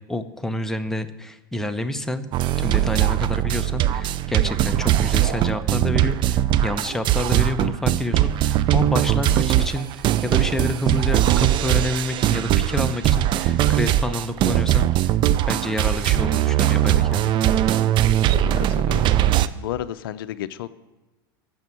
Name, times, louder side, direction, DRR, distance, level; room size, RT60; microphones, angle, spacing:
voice 1, 0.1-2.3 2.6-9.9 10.2-15.1 15.5-17.3, left 1 dB, 5° left, 8 dB, 0.8 m, -28 dB
sound 1, 2.3-19.5, right 12 dB, 40° right, 0.5 m, -20 dB
voice 2, 18.3-19.1 19.5-20.7, left 12 dB, 70° left, 14 dB, 0.5 m, -32 dB
9.4 x 6.9 x 8.9 m, 1.1 s
hypercardioid pair, 95°, 12 cm